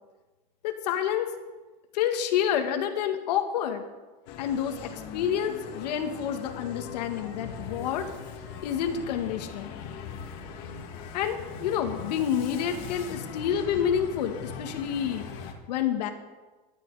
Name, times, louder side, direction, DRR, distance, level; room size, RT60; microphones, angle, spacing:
voice 1, 0.6-1.3 1.9-3.8 4.4-8.1 8.6-9.7 11.1-15.3 15.7-16.1, left 9 dB, 75° left, 5 dB, 1.7 m, -28 dB
sound 1, 4.3-15.5, left 6 dB, 45° left, 2.0 m, -40 dB
19.0 x 12.0 x 4.8 m, 1.2 s
supercardioid pair, 175°, 21 cm